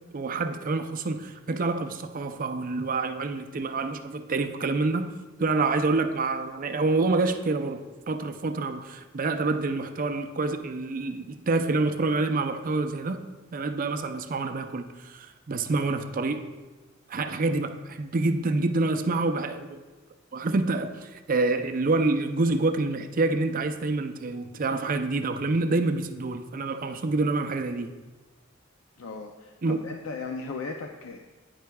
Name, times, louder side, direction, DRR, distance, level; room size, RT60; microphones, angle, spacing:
voice 1, 0.1-5.1 5.4-13.2 13.5-16.5 17.1-19.8 20.3-27.9 29.6-29.8, right 3 dB, 45° right, 7 dB, 0.5 m, -27 dB
voice 2, 29.0-31.2, left 4 dB, 85° left, 3 dB, 0.5 m, -37 dB
10.0 x 9.4 x 2.3 m, 1.2 s
head